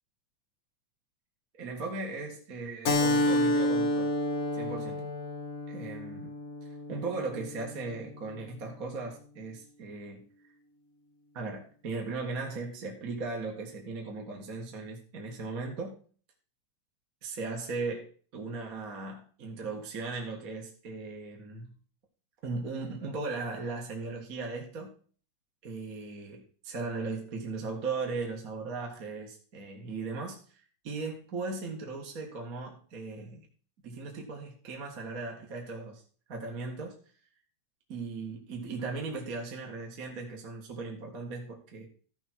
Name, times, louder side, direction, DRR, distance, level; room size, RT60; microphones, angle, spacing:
voice 1, 1.5-4.1 4.5-5.1 5.7-6.3 6.6-10.2 11.3-16.0 17.2-21.8 22.4-24.9 25.6-33.5 33.8-36.0 36.3-36.9 37.9-41.9, right 3 dB, 35° right, 0 dB, 2.0 m, -37 dB
Keyboard (musical), 2.8-8.0, left 1 dB, 85° left, 0.7 m, -30 dB
14.5 x 5.4 x 4.6 m, 0.42 s
omnidirectional pair, 3.4 m